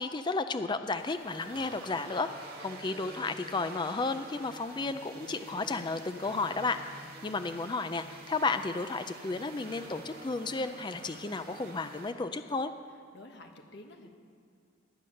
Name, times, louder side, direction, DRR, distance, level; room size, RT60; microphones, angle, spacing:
voice 1, 0.0-6.8 7.2-12.7, left 3 dB, 20° left, 10 dB, 0.4 m, -33 dB
sound 1, 1.0-12.1, right 2 dB, 50° right, 2.1 m, -48 dB
voice 2, 13.1-14.1, left 1 dB, 60° left, 3 dB, 1.5 m, -50 dB
19.0 x 9.3 x 6.5 m, 2.2 s
head